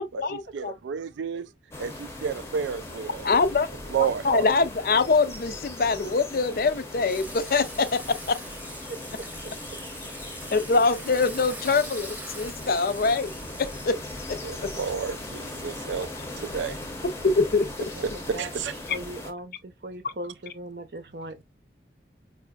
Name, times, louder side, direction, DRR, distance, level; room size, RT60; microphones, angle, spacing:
voice 1, 0.0-0.7 3.2-3.7 4.2-8.0 8.3-8.4 10.5-13.3 13.6-14.0 14.3-14.4 17.2-17.7, left 4 dB, 55° left, 0.4 m, -23 dB
voice 2, 0.5-1.5 1.8-3.3 3.9-4.5 14.4-16.1 16.4-16.8 18.0-18.8, right 6 dB, 90° right, 0.3 m, -31 dB
sound 1, 1.7-19.3, left 2 dB, 15° left, 0.7 m, -39 dB
Water / Water tap faucet / Sink (filling or washing), 7.1-13.8, right 1 dB, 10° right, 0.9 m, -43 dB
voice 3, 18.1-18.5 18.9-21.4, right 1 dB, 60° right, 0.7 m, -39 dB
4.7 x 2.5 x 2.3 m
head